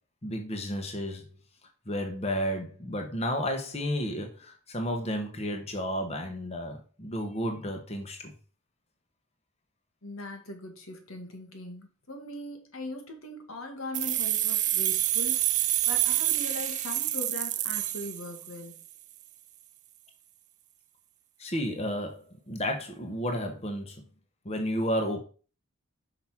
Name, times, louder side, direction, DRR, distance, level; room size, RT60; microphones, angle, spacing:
voice 1, 0.2-1.3 1.9-8.3 21.4-24.0 24.4-25.2, equal, 30° left, 1.1 m, -32 dB
voice 2, 10.0-18.8, left 2 dB, 85° left, 2.0 m, -40 dB
sound 1, 13.9-18.7, right 14 dB, 35° right, 0.4 m, -27 dB
5.9 x 5.1 x 5.9 m
head